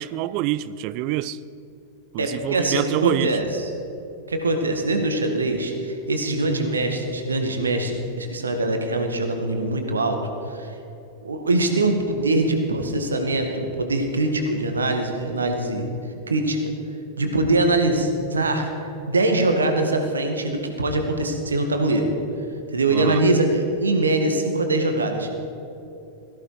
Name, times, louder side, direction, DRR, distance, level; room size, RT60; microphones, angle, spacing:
voice 1, 0.0-1.4 2.1-3.4 22.9-23.2, right 14 dB, 45° right, 0.5 m, -26 dB
voice 2, 2.2-3.7 4.3-10.8 11.2-15.9 16.3-16.7 17.2-18.7 19.1-22.1 22.7-25.3, right 2 dB, 75° right, 1.9 m, -23 dB
18.5 x 14.5 x 5.0 m
figure-of-eight pair, 90°, 0 cm